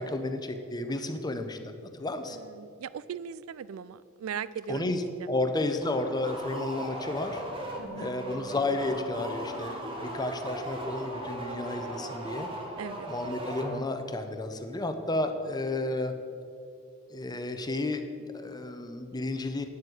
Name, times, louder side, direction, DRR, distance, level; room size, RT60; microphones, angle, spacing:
voice 1, 0.0-2.4 4.7-5.0 5.3-7.4 8.0-12.5 13.1-16.1 17.1-19.7, left 2 dB, 20° left, 7 dB, 0.7 m, -32 dB
voice 2, 2.3-4.9 5.2-5.3 7.8-8.1 12.8-13.1, right 7 dB, 85° right, 18 dB, 0.4 m, -39 dB
sound 1, 5.8-14.1, equal, 25° right, 1.6 m, -38 dB
sound 2, 7.8-12.5, right 1 dB, 5° right, 1.2 m, -46 dB
9.6 x 7.3 x 7.9 m, 2.5 s
head